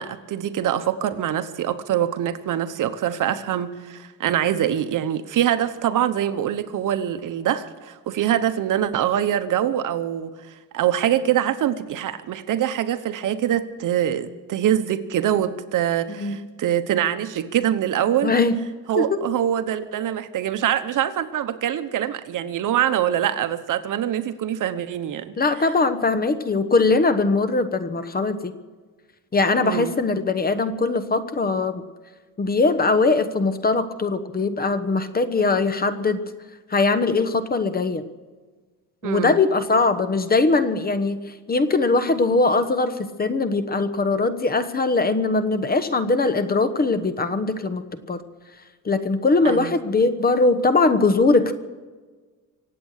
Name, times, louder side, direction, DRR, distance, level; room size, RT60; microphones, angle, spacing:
voice 1, 0.0-10.3 10.7-18.3 18.9-25.3 29.6-29.9 39.0-39.4 49.4-49.7, right 10 dB, 65° right, 11 dB, 1.1 m, -24 dB
voice 2, 18.2-18.5 18.9-19.2 25.4-28.5 29.3-31.8 32.4-36.2 36.7-38.0 39.0-41.2 41.5-48.2 48.8-51.5, left 3 dB, 25° left, 11 dB, 1.1 m, -21 dB
25.0 x 8.6 x 6.5 m, 1.4 s
cardioid pair, 120°, 33 cm